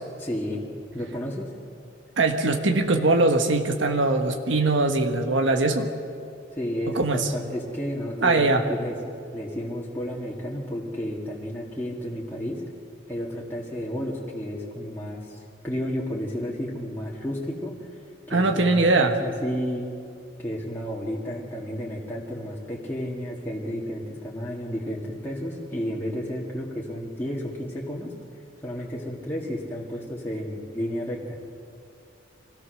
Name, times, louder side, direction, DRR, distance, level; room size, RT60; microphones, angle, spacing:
voice 1, 0.2-0.6 0.9-1.5 6.5-12.6 13.1-18.0 18.3-19.9 20.4-28.1 28.6-31.4, equal, 10° left, -5 dB, 2.2 m, -32 dB
voice 2, 2.2-5.9 6.9-7.3 8.2-8.6 18.3-19.2, right 2 dB, 85° right, 4 dB, 1.4 m, -21 dB
25.5 x 17.0 x 6.5 m, 2.5 s
head